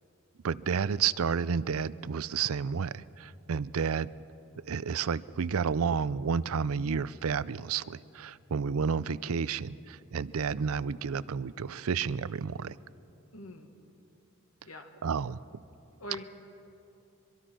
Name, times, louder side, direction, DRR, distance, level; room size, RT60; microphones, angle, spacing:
voice 1, 0.4-4.1 4.7-12.8 15.0-15.4, right 6 dB, 80° right, 18 dB, 0.5 m, -31 dB
voice 2, 13.3-13.7 14.7-14.9 16.0-16.2, left 1 dB, 85° left, 5 dB, 1.9 m, -42 dB
24.0 x 22.5 x 6.2 m, 2.8 s
head